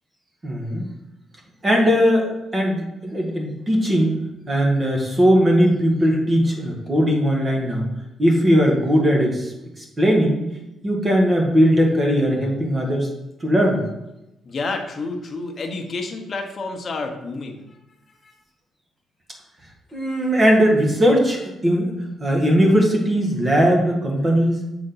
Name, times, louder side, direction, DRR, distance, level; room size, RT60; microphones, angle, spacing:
voice 1, 0.4-0.9 1.6-4.1 4.5-7.8 8.2-10.4 10.8-13.1 13.4-13.8 19.9-21.9 22.2-24.6, equal, 30° right, 0 dB, 1.5 m, -19 dB
voice 2, 14.4-17.8 18.2-18.3, left 3 dB, 40° left, 3 dB, 0.9 m, -29 dB
6.8 x 3.9 x 3.9 m, 0.92 s
cardioid pair, 90°, 0 cm